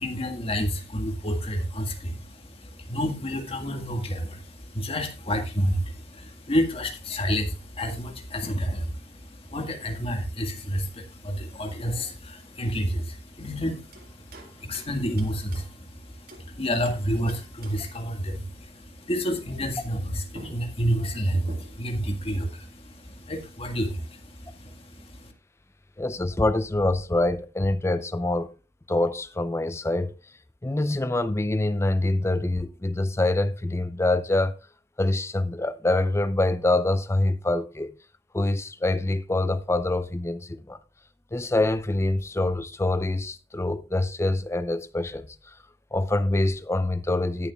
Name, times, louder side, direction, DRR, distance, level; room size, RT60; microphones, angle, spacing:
voice 1, 0.0-25.3, equal, 35° left, 1.7 m, -30 dB
sound 1, 13.9-16.5 16.8-18.0 19.9-20.0 20.3-22.0, right 2 dB, 55° right, 2.0 m, -48 dB
voice 2, 26.0-28.5 28.9-30.1 30.6-34.6 35.0-37.9 38.3-40.8 41.3-45.6 45.9-47.5, left 2 dB, 15° left, 0.5 m, -25 dB
18.0 x 6.9 x 2.3 m
head